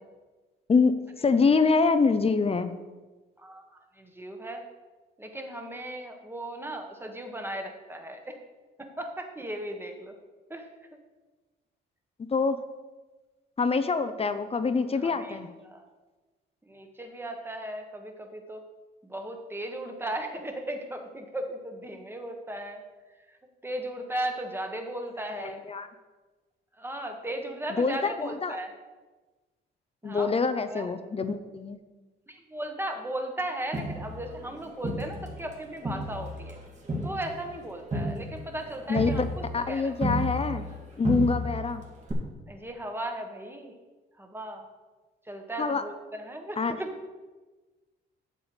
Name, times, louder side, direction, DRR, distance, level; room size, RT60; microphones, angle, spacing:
voice 1, 0.7-2.7 12.2-12.6 13.6-15.5 25.3-25.9 27.8-28.6 30.0-31.8 38.9-39.3 39.5-40.7 41.0-41.8 45.6-45.8 46.6-46.8, left 4 dB, 30° left, 11 dB, 0.7 m, -25 dB
voice 2, 4.0-4.6 5.2-8.3 9.0-10.1 10.5-10.7 15.0-15.4 15.6-15.8 16.6-18.6 19.0-22.8 23.6-25.6 26.8-28.7 30.0-30.4 30.7-30.9 32.3-36.6 37.0-39.9 42.5-43.7 44.2-44.6 45.3-46.9, right 1 dB, 10° right, 4 dB, 1.4 m, -36 dB
Crowd, 33.7-35.5 35.9-40.8 41.0-41.7 42.1-42.2, equal, 35° right, 2.6 m, -32 dB
8.1 x 7.7 x 5.0 m, 1.3 s
cardioid pair, 90°, 20 cm